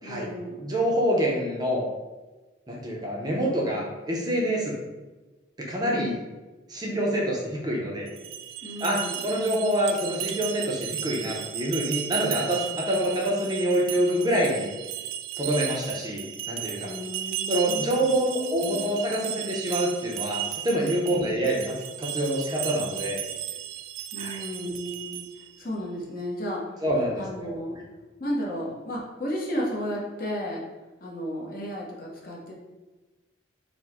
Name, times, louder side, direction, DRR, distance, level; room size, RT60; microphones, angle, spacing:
voice 1, 0.0-0.7 8.6-9.2 16.8-18.9 21.1-21.3 24.1-25.3 25.6-26.8 27.2-27.8 28.2-30.6 31.0-32.5, equal, 45° left, -3 dB, 0.8 m, -34 dB
voice 2, 0.6-1.9 2.7-4.8 5.6-6.2 6.7-8.1 8.8-14.7 15.4-16.9 17.5-23.2 24.2-24.4 26.8-27.6, equal, 20° right, -2 dB, 0.5 m, -26 dB
sound 1, 8.1-25.5, right 11 dB, 80° right, 0.3 m, -35 dB
4.4 x 2.1 x 4.2 m, 1.2 s
head